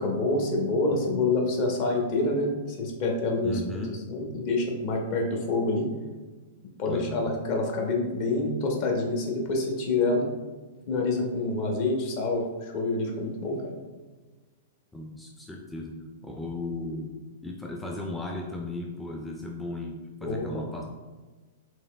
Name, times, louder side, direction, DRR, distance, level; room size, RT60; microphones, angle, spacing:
voice 1, 0.0-3.8 4.1-5.9 6.8-10.3 10.9-13.6 20.2-20.6, left 2 dB, 50° left, 1 dB, 0.8 m, -27 dB
voice 2, 3.4-4.0 6.9-7.3 14.9-15.9 16.2-17.1 17.4-20.8, left 2 dB, 5° left, 0 dB, 0.4 m, -36 dB
4.5 x 3.3 x 2.2 m, 1.3 s
figure-of-eight pair, 105°, 0 cm